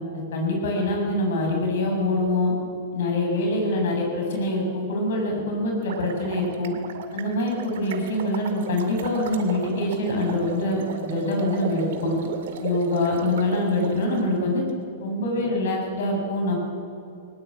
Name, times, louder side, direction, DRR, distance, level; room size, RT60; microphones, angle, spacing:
voice 1, 0.1-2.5 2.9-6.7 7.1-12.2 12.6-14.6 15.0-16.5, left 1 dB, 75° left, 1 dB, 6.9 m, -25 dB
sound 1, 5.9-14.2, right 6 dB, 70° right, 2.2 m, -36 dB
19.5 x 19.5 x 8.7 m, 2.7 s
hypercardioid pair, 135°, 0 cm